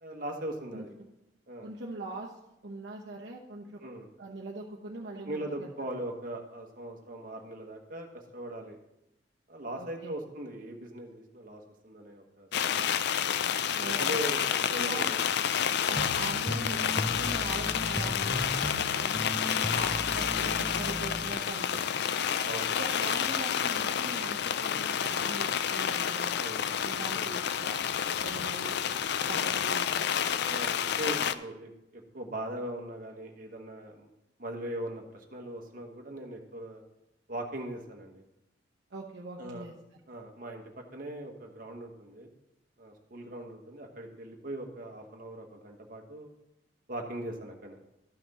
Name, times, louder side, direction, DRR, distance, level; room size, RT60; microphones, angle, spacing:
voice 1, 0.0-0.9 1.5-1.7 3.8-4.1 5.2-8.1 8.3-8.8 9.5-12.9 13.7-15.2 15.5-15.8 19.6-19.9 22.4-22.8 26.4-26.8 27.1-27.3 30.5-34.1 34.4-36.8 37.3-38.2 39.4-39.6 40.1-42.3 42.8-46.3 46.9-47.8, right 1 dB, 50° right, 2 dB, 1.3 m, -40 dB
voice 2, 1.6-2.3 2.6-3.8 4.2-5.7 9.8-10.1 13.8-14.2 14.7-15.2 15.9-19.2 19.7-22.1 22.8-26.4 26.8-27.8 28.2-28.7 29.3-30.4 38.9-39.7, right 2 dB, 65° right, -2 dB, 0.9 m, -42 dB
sound 1, 12.5-31.3, left 8 dB, 65° left, 0.4 m, -29 dB
sound 2, 16.0-21.3, equal, 10° left, 1.0 m, -36 dB
12.5 x 5.8 x 4.2 m, 0.87 s
head